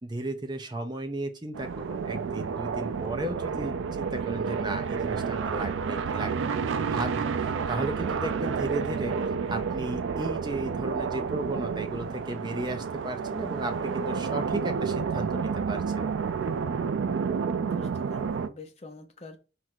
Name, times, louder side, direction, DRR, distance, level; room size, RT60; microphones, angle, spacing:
voice 1, 0.0-16.1, right 2 dB, 20° right, 6 dB, 0.5 m, -35 dB
sound 1, 1.5-18.5, right 5 dB, 80° right, 0.4 m, -30 dB
voice 2, 17.6-19.4, left 2 dB, 35° left, 4 dB, 0.7 m, -45 dB
4.3 x 2.5 x 4.4 m, 0.33 s
head